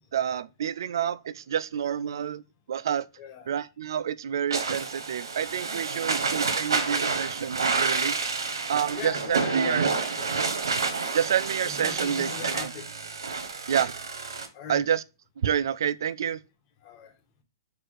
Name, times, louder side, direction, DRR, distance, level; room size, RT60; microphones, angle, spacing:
voice 1, 0.1-2.4 2.7-3.1 3.5-9.9 11.1-12.7 13.7-13.9 14.7-15.0 15.4-16.4, right 9 dB, 70° right, 0.3 m, -29 dB
voice 2, 3.2-3.5 5.9-6.1 8.9-10.4 11.6-12.9 14.5-14.9 16.8-17.1, left 7 dB, 35° left, 1.3 m, -40 dB
sound 1, 4.5-14.5, right 4 dB, 90° right, 0.9 m, -29 dB
4.3 x 2.5 x 4.7 m
hypercardioid pair, 140°, 2 cm